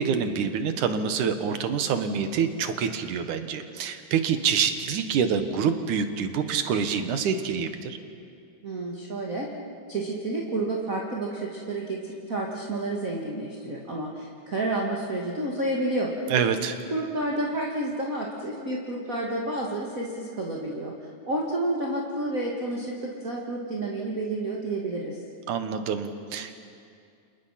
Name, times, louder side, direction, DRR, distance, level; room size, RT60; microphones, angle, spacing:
voice 1, 0.0-8.0 16.3-16.8 25.5-26.6, right 6 dB, 85° right, 8 dB, 2.9 m, -26 dB
voice 2, 8.6-9.5 9.9-16.1 16.9-20.9 21.3-25.2, right 2 dB, 30° right, -3 dB, 2.2 m, -30 dB
30.0 x 28.0 x 5.9 m, 2.4 s
omnidirectional pair, 3.4 m